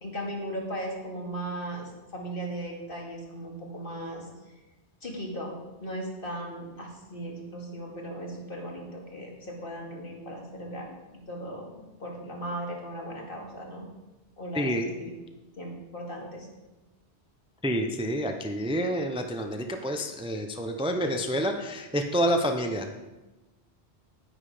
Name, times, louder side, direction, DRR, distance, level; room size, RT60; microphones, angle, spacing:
voice 1, 0.0-4.5 5.0-5.6 5.8-13.9 14.4-15.1 15.6-16.5, right 1 dB, 55° left, -1 dB, 2.6 m, -37 dB
voice 2, 17.6-22.9, equal, 5° right, 5 dB, 0.6 m, -28 dB
10.0 x 9.8 x 5.0 m, 1.1 s
omnidirectional pair, 1.1 m